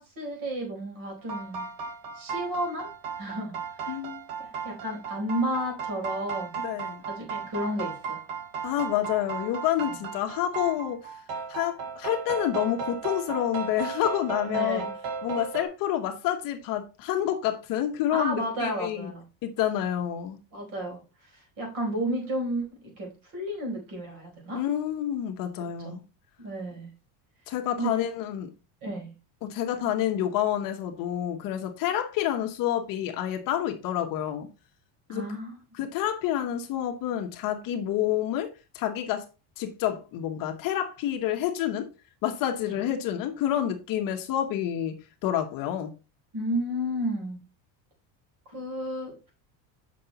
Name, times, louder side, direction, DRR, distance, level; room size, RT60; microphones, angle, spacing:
voice 1, 0.0-1.7 2.1-2.9 3.2-4.0 4.4-6.6 7.1-8.3 9.9-10.0 14.5-14.9 18.1-19.2 20.5-21.0 21.3-22.7 23.0-24.6 25.8-26.0 26.4-26.9 27.8-27.9 28.8-29.1 35.1-35.6 42.7-42.8 46.3-47.4 48.5-49.3, right 1 dB, 45° right, 4.2 m, -32 dB
sound 1, 1.2-15.6, right 6 dB, 85° right, 2.1 m, -35 dB
voice 2, 3.9-4.2 6.6-7.0 8.6-11.1 11.5-14.8 15.2-19.1 19.4-20.4 24.5-26.0 27.5-28.5 29.4-34.5 35.1-35.2 35.7-39.3 39.6-41.9 42.2-45.9, left 11 dB, 45° left, 1.2 m, -28 dB
7.5 x 5.8 x 4.0 m
cardioid pair, 170°, 46 cm